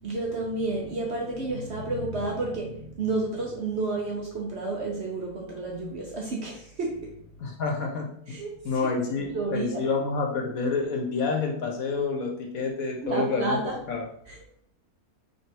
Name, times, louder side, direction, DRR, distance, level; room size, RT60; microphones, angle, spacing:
voice 1, 0.0-7.2 8.3-8.6 9.2-9.8 13.0-13.8 14.3-14.4, right 2 dB, 55° right, -1 dB, 0.8 m, -31 dB
voice 2, 7.4-8.4 8.6-13.6 13.9-14.0, left 4 dB, 65° left, 1 dB, 1.1 m, -28 dB
3.2 x 2.7 x 4.3 m, 0.68 s
omnidirectional pair, 1.7 m